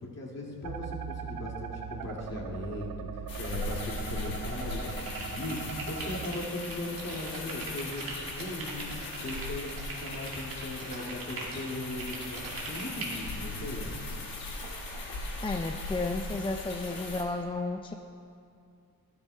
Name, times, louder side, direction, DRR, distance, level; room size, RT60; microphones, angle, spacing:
voice 1, 0.0-13.9, left 1 dB, 45° left, -3 dB, 2.3 m, -38 dB
sound 1, 0.6-6.3, right 7 dB, 65° right, 0.6 m, -40 dB
sound 2, 3.3-17.2, left 2 dB, 70° left, 1.6 m, -39 dB
sound 3, 4.9-13.2, right 2 dB, 90° right, 1.7 m, -41 dB
voice 2, 15.4-17.9, left 2 dB, 15° left, 5 dB, 0.4 m, -32 dB
12.5 x 11.0 x 2.2 m, 2.5 s
cardioid pair, 70°, 35 cm